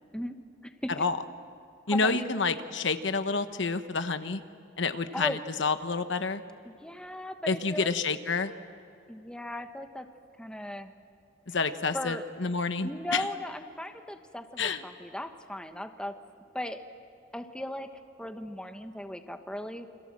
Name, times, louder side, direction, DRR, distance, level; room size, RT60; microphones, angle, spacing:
voice 1, 0.6-1.0 1.9-2.3 5.1-5.4 6.6-7.9 9.1-10.1 10.4-10.9 11.9-12.2 12.8-16.1 16.5-16.8 17.3-17.9 18.2-19.9, left 1 dB, 5° left, 6 dB, 1.2 m, -37 dB
voice 2, 1.9-4.4 4.8-6.4 7.5-8.5 11.5-13.3 14.6-14.8, left 4 dB, 70° left, 10 dB, 1.1 m, -29 dB
28.5 x 26.5 x 7.5 m, 2.5 s
head